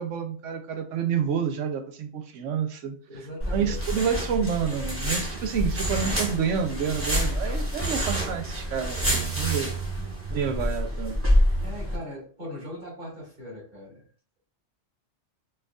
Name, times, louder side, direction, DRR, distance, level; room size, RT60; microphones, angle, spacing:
voice 1, 0.0-3.0 3.5-9.7 10.3-11.2, right 7 dB, 85° right, 6 dB, 1.0 m, -28 dB
voice 2, 3.1-3.8 9.9-10.2 11.6-14.0, left 1 dB, 50° right, -4 dB, 1.8 m, -40 dB
sound 1, 3.4-11.9, equal, 15° right, 0.8 m, -27 dB
4.4 x 2.5 x 2.3 m, 0.43 s
omnidirectional pair, 1.2 m